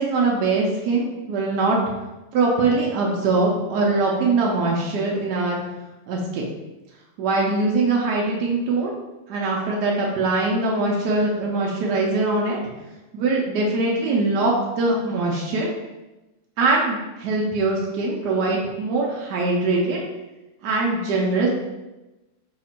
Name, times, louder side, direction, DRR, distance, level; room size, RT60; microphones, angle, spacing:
voice 1, 0.0-1.8 2.3-5.6 6.1-6.4 7.2-8.9 9.3-12.6 13.1-15.7 16.6-20.0 20.6-21.5, right 3 dB, 70° right, -2 dB, 1.0 m, -22 dB
3.3 x 2.8 x 4.2 m, 1.1 s
omnidirectional pair, 2.2 m